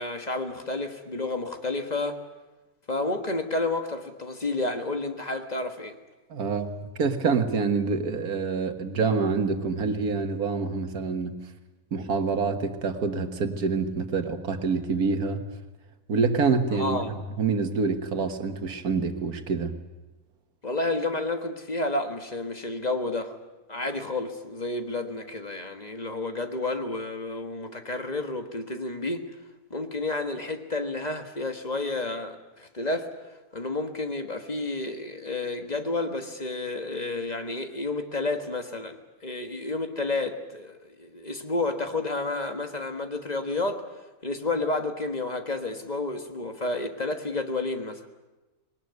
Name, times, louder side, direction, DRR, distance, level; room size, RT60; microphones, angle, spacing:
voice 1, 0.0-2.2 2.9-6.0 16.7-17.1 20.6-23.3 23.7-29.2 29.7-33.1 33.5-43.8 44.2-48.1, left 2 dB, 30° left, 6 dB, 1.5 m, -30 dB
voice 2, 6.3-6.7 7.0-11.4 11.9-15.4 16.1-17.0 17.4-19.7, right 4 dB, 80° right, 7 dB, 2.0 m, -26 dB
20.5 x 19.0 x 9.5 m, 1.1 s
omnidirectional pair, 1.6 m